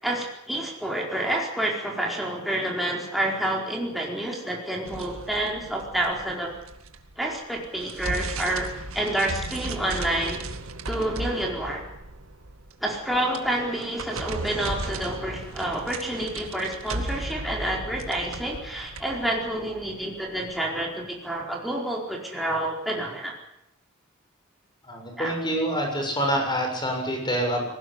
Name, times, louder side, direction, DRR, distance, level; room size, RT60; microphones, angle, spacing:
voice 1, 0.0-6.5 7.2-8.7 8.9-10.4 10.9-11.8 12.8-23.3 25.2-25.4, right 1 dB, ahead, -2 dB, 4.7 m, -28 dB
sound 1, 4.9-7.2 7.6-20.6, right 2 dB, 85° right, 2.0 m, -36 dB
voice 2, 24.9-27.7, equal, 20° left, 3 dB, 7.1 m, -26 dB
20.5 x 18.5 x 9.9 m, 0.79 s
head